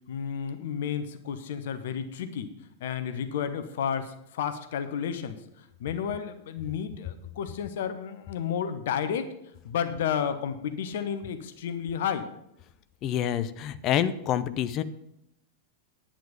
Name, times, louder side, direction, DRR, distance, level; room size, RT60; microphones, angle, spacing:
voice 1, 0.1-2.5 2.8-9.3 9.6-12.3, left 8 dB, 55° left, 10 dB, 1.0 m, -32 dB
voice 2, 13.0-14.8, left 10 dB, 35° left, 13 dB, 0.7 m, -27 dB
10.5 x 8.8 x 5.2 m, 0.80 s
figure-of-eight pair, 90°, 0 cm